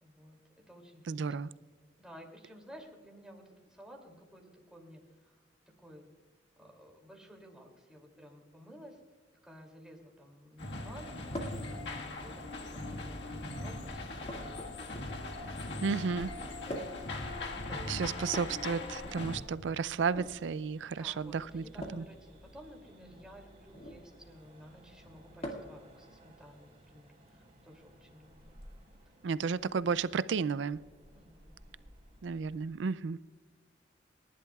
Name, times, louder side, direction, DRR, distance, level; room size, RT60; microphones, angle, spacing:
voice 1, 0.0-1.4 2.0-5.4 5.8-6.0 6.6-9.0 9.4-15.0 16.6-17.3 17.7-18.1 20.9-28.5 31.1-31.6, equal, 5° right, 2.7 m, -54 dB
voice 2, 1.1-1.5 15.8-16.3 17.9-21.6 21.9-22.0 29.2-30.8 32.2-33.2, right 5 dB, 75° right, 0.4 m, -32 dB
sound 1, 10.6-19.4, left 2 dB, 65° left, 1.6 m, -40 dB
sound 2, 11.3-11.7 12.7-13.2 14.3-15.4 16.7-17.1 18.2-19.3 20.0-20.3 21.8-22.1 23.7-24.0 25.4-25.8 27.3-27.4 28.6-28.7, equal, 35° left, 2.1 m, -43 dB
sound 3, 17.1-32.7, equal, 35° right, 4.0 m, -58 dB
29.0 x 11.5 x 2.4 m
head